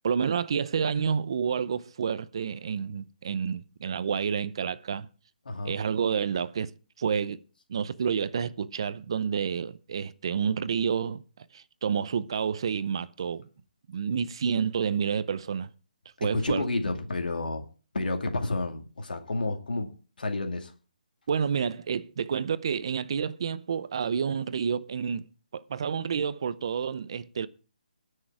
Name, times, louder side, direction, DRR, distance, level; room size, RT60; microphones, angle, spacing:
voice 1, 0.0-5.1 5.6-7.4 7.7-11.2 11.5-13.5 13.9-15.7 16.2-16.7 21.3-27.5, right 6 dB, 35° right, 0.6 m, -29 dB
voice 2, 5.5-5.8 16.2-17.6 17.9-19.9 20.2-20.7, left 2 dB, 85° left, 2.4 m, -30 dB
18.0 x 6.5 x 4.8 m
hypercardioid pair, 175°, 5 cm